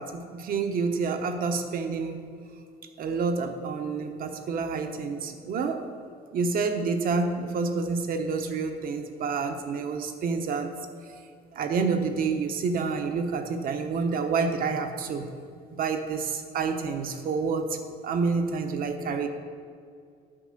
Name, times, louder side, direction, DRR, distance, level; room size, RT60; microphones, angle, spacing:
voice 1, 0.0-2.2 3.0-5.9 6.3-10.7 11.5-15.3 15.8-17.8 18.0-19.3, right 4 dB, 60° right, 6 dB, 1.0 m, -28 dB
10.0 x 4.9 x 6.7 m, 2.3 s
cardioid pair, 110°, 17 cm